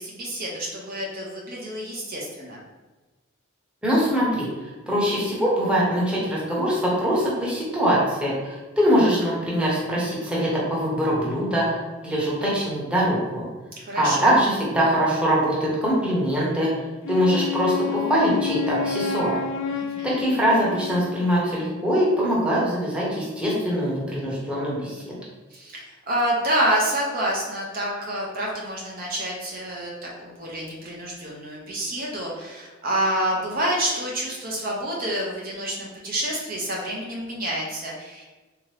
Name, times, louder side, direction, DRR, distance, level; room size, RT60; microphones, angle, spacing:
voice 1, 0.0-2.6 13.8-14.4 19.7-20.2 25.5-38.2, right 1 dB, 45° right, -3 dB, 0.7 m, -28 dB
voice 2, 3.8-4.5 4.9-11.7 12.0-13.4 14.0-16.7 17.1-19.4 20.0-25.2, equal, 5° right, -6 dB, 0.9 m, -23 dB
Wind instrument woodwind instrument, 17.0-21.4, left 7 dB, 65° left, 0.3 m, -29 dB
3.6 x 2.9 x 3.3 m, 1.2 s
head